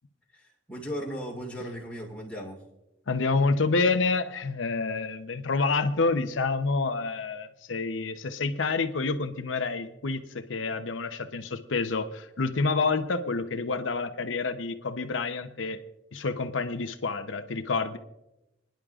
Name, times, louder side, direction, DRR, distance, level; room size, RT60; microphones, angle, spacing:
voice 1, 0.3-2.6, equal, 5° left, -3 dB, 3.3 m, -37 dB
voice 2, 3.1-15.8 16.1-18.0, left 4 dB, 85° left, 9 dB, 0.8 m, -28 dB
30.0 x 10.5 x 2.4 m, 0.94 s
head